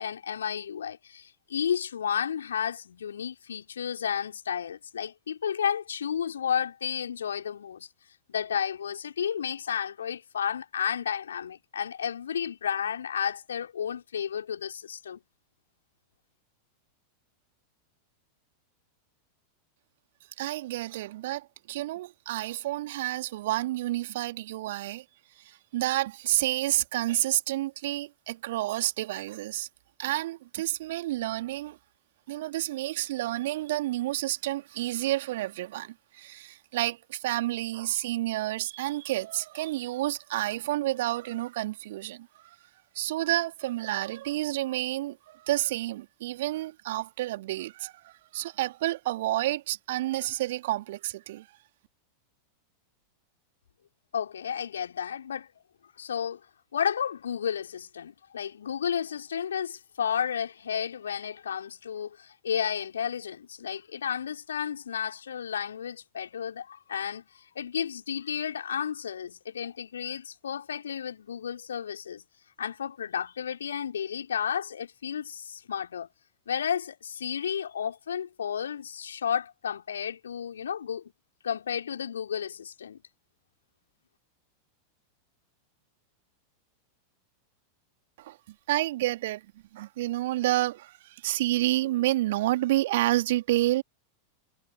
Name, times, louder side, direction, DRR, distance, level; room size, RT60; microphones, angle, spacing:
voice 1, 0.0-7.9 8.3-15.2 54.1-55.5 56.0-56.4 56.7-67.3 67.6-72.2 72.6-76.1 76.5-81.0 81.4-83.0, left 8 dB, 65° left, 3.9 m, -32 dB
voice 2, 20.4-25.0 25.4-29.7 30.0-31.8 32.3-42.6 42.9-51.5 88.2-88.4 88.7-89.5 89.7-93.8, right 16 dB, 55° right, 2.8 m, -30 dB
figure-of-eight pair, 90°, 0 cm